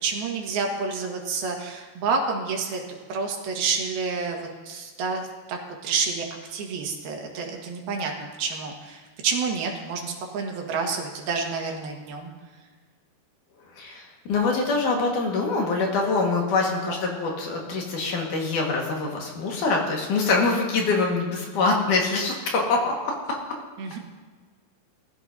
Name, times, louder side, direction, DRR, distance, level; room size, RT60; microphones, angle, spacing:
voice 1, 0.0-2.8 3.1-8.1 8.4-12.3 23.8-24.0, right 4 dB, 85° right, 1 dB, 3.4 m, -29 dB
voice 2, 13.8-23.1 23.9-24.0, left 3 dB, 60° left, 0 dB, 2.9 m, -24 dB
18.5 x 15.0 x 2.7 m, 1.5 s
omnidirectional pair, 4.3 m